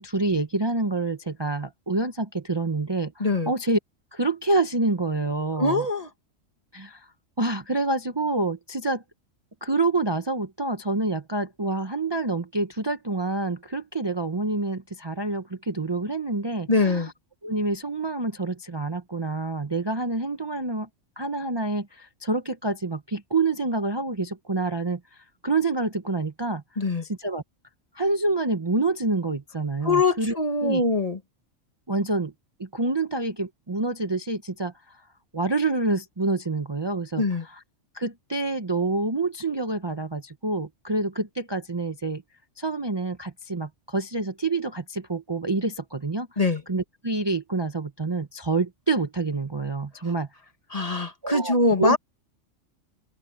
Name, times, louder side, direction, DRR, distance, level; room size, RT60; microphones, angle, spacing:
voice 1, 0.0-3.8 4.1-5.9 6.7-7.1 7.4-9.0 9.6-17.1 17.4-20.9 21.2-26.6 27.0-27.4 27.9-30.4 30.6-30.8 31.9-32.3 32.6-35.0 35.3-37.6 37.9-42.2 42.6-46.4 46.7-50.3 51.2-52.0, right 3 dB, 25° right, 0.9 m, -27 dB
voice 2, 3.2-3.5 5.6-6.1 16.7-17.1 26.8-27.0 29.8-31.2 37.2-37.4 46.4-46.6 50.7-52.0, left 2 dB, 30° left, 1.6 m, -23 dB
open air
omnidirectional pair, 1.3 m